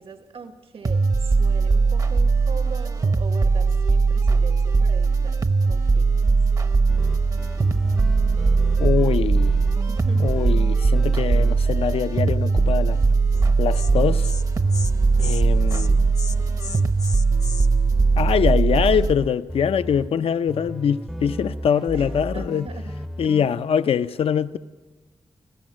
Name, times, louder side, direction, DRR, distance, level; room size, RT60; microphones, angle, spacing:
voice 1, 0.0-6.4 9.9-10.3 14.9-15.4 21.9-22.9 23.5-23.6 23.9-24.0, right 5 dB, 75° right, 1.5 m, -41 dB
sound 1, 0.8-19.1, right 4 dB, 40° right, 0.8 m, -20 dB
sound 2, 6.9-16.9 17.3-20.1 20.5-23.5, equal, ahead, 0.6 m, -33 dB
voice 2, 8.8-9.5 10.2-13.0 13.6-14.3 15.2-16.0 18.2-22.7 23.2-24.6, left 7 dB, 80° left, 0.6 m, -23 dB
Insect, 13.3-13.5 13.7-13.9 14.2-14.4 14.7-14.9 15.2-15.4 15.7-15.9 16.2-17.7, left 4 dB, 40° left, 0.7 m, -34 dB
25.5 x 16.0 x 7.5 m
wide cardioid pair, 130°, 10 cm